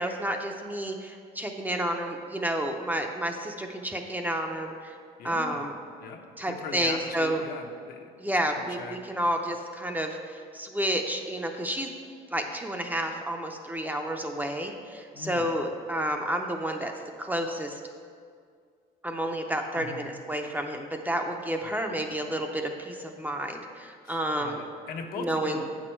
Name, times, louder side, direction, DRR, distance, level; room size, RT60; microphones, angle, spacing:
voice 1, 0.0-4.9 5.2-5.7 6.4-7.4 8.2-11.9 12.3-16.9 17.2-17.8 19.0-24.6 25.2-25.6, right 1 dB, 10° right, 3 dB, 0.5 m, -30 dB
voice 2, 5.2-5.7 6.0-8.0 8.6-9.0 15.1-15.5 19.7-20.1 21.6-21.8 24.0-25.6, left 5 dB, 60° left, 2 dB, 0.9 m, -40 dB
8.3 x 6.2 x 4.5 m, 2.2 s
cardioid pair, 110°, 17 cm